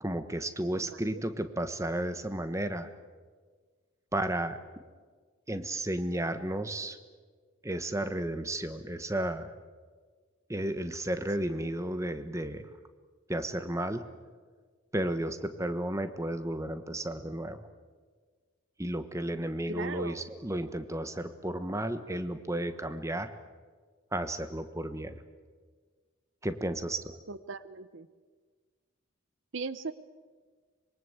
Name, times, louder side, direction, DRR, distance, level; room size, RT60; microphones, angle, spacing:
voice 1, 0.0-2.9 4.1-4.6 5.5-7.0 7.6-9.5 10.5-12.7 13.3-14.0 14.9-17.7 18.8-23.3 24.1-25.2 26.4-27.2, right 1 dB, 15° right, 10 dB, 1.2 m, -33 dB
voice 2, 0.8-1.2 11.4-11.7 19.7-20.2 27.3-28.1 29.5-29.9, right 4 dB, 60° right, 14 dB, 0.8 m, -39 dB
25.0 x 23.0 x 8.0 m, 1.5 s
head